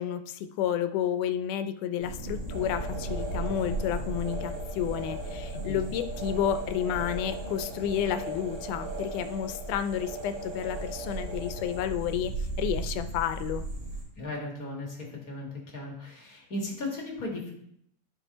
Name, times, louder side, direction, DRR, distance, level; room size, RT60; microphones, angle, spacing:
voice 1, 0.0-13.6, left 10 dB, 85° left, 10 dB, 2.1 m, -31 dB
sound 1, 2.0-14.0, right 2 dB, 30° right, 2.7 m, -37 dB
sound 2, 2.5-11.9, right 1 dB, 60° right, 3.4 m, -40 dB
voice 2, 14.1-17.5, left 2 dB, 40° left, -1 dB, 1.4 m, -36 dB
11.0 x 5.2 x 4.0 m, 0.71 s
omnidirectional pair, 3.6 m